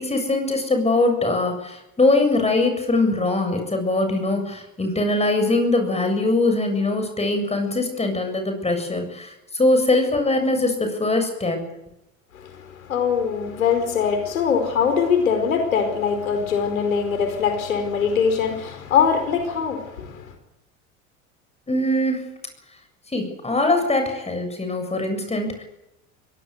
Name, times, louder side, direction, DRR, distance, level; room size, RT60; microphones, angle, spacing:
voice 1, 0.0-11.7 21.7-22.2 23.1-25.6, left 2 dB, 15° left, 7.5 m, -22 dB
voice 2, 12.3-20.3, left 6 dB, 80° left, 5.0 m, -22 dB
23.0 x 18.5 x 8.2 m
hypercardioid pair, 75°, 40 cm